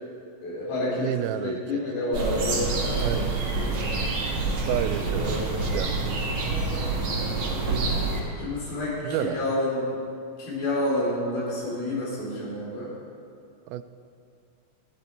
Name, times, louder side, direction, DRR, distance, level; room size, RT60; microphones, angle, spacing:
voice 1, 0.4-1.1 1.4-3.8 4.3-4.5 5.0-5.7 7.0-7.3 8.4-9.9 10.4-12.9, left 1 dB, 85° left, -6 dB, 5.7 m, -29 dB
voice 2, 1.0-1.8 3.0-3.3 4.7-6.3 9.0-9.5 13.7-13.8, right 12 dB, 85° right, 12 dB, 2.4 m, -31 dB
sound 1, 2.1-8.2, right 3 dB, 50° right, 2.6 m, -27 dB
15.0 x 11.5 x 4.5 m, 2.4 s
omnidirectional pair, 4.2 m